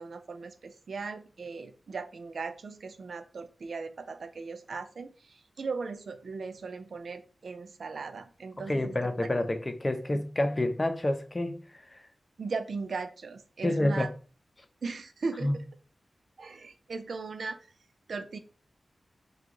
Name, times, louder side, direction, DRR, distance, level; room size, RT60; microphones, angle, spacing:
voice 1, 0.0-9.3 10.1-10.2 12.4-14.1 14.8-15.6 16.4-17.6 18.1-18.4, right 4 dB, 80° right, 0.5 m, -38 dB
voice 2, 8.7-11.6 11.9-12.0 13.6-14.1 15.4-15.6, left 1 dB, 30° left, 0.6 m, -28 dB
4.5 x 2.4 x 3.8 m
wide cardioid pair, 70°, 0 cm